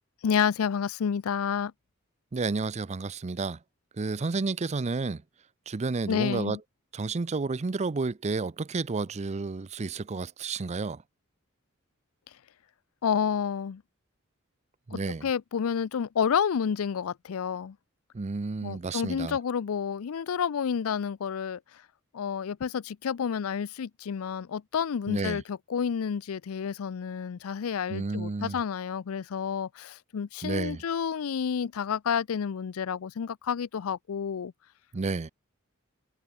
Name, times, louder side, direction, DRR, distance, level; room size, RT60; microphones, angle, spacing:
voice 1, 0.2-1.7 6.1-6.6 13.0-13.8 14.9-17.8 18.6-21.6 22.1-34.5, left 7 dB, 80° left, 0.4 m, -30 dB
voice 2, 2.3-3.6 4.0-5.2 5.7-6.6 6.9-11.0 14.9-15.3 18.1-19.4 25.1-25.4 27.9-28.6 30.4-30.8 34.9-35.3, right 3 dB, 30° right, 0.5 m, -31 dB
head